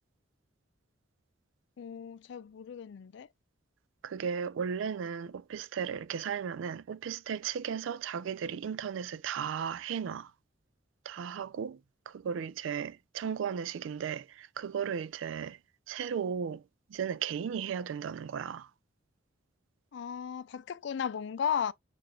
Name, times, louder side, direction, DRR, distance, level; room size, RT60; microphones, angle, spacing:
voice 1, 1.8-3.3 19.9-21.7, left 7 dB, 65° left, 0.3 m, -35 dB
voice 2, 4.0-10.3 11.1-11.8 12.1-15.6 15.9-16.6 16.9-18.7, right 7 dB, 80° right, 0.3 m, -35 dB
6.7 x 2.5 x 2.9 m
head